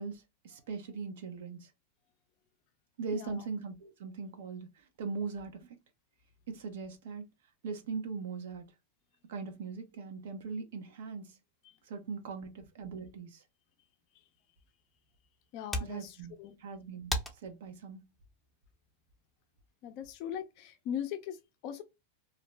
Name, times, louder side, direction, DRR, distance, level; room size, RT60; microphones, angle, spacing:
voice 1, 0.0-1.7 3.0-5.8 6.5-7.3 7.6-8.6 9.3-11.3 11.9-13.4 15.8-16.3 16.6-17.1 17.4-18.1, right 5 dB, 75° right, 0.7 m, -40 dB
voice 2, 3.1-3.5 11.6-11.8 15.5-16.6 19.8-21.8, left 9 dB, 50° left, 0.4 m, -40 dB
sound 1, 14.6-19.6, equal, 5° left, 0.6 m, -42 dB
2.5 x 2.0 x 3.2 m
hypercardioid pair, 115°, 0 cm